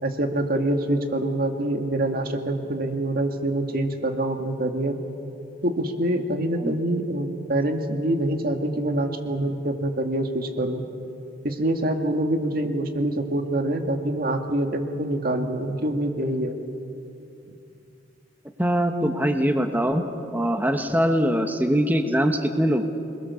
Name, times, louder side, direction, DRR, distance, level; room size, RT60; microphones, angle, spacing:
voice 1, 0.0-5.0 5.6-10.8 11.4-16.6, right 1 dB, 55° right, 5 dB, 2.0 m, -25 dB
voice 2, 18.6-20.0 20.3-22.8, equal, 10° right, 6 dB, 1.2 m, -22 dB
28.0 x 21.5 x 7.1 m, 2.7 s
head